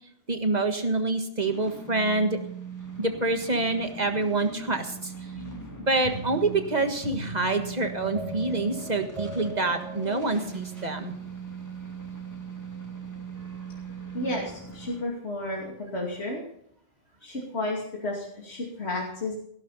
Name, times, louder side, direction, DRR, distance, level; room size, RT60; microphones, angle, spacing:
voice 1, 0.3-2.4 3.0-5.1 5.9-11.1, right 2 dB, 40° right, 6 dB, 1.7 m, -26 dB
sound 1, 1.5-15.0, right 5 dB, 15° left, 2.0 m, -41 dB
sound 2, 5.3-11.0, right 2 dB, 65° right, 3.8 m, -39 dB
voice 2, 14.1-16.4 17.2-19.4, left 1 dB, 75° left, -2 dB, 2.9 m, -32 dB
17.0 x 11.5 x 4.2 m, 0.68 s
omnidirectional pair, 1.1 m